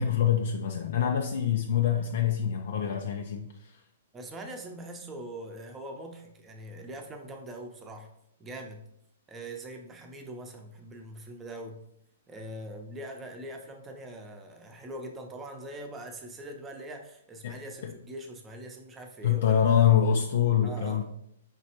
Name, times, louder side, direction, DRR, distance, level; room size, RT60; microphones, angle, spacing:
voice 1, 0.0-3.5 17.4-17.5 17.8-17.9 19.2-21.0, left 9 dB, 65° left, 0.4 m, -25 dB
voice 2, 4.1-8.1 8.4-8.8 9.3-11.8 12.3-19.8 20.6-21.0, right 1 dB, 20° right, 0.7 m, -42 dB
5.2 x 3.1 x 2.9 m
hypercardioid pair, 120°, 0 cm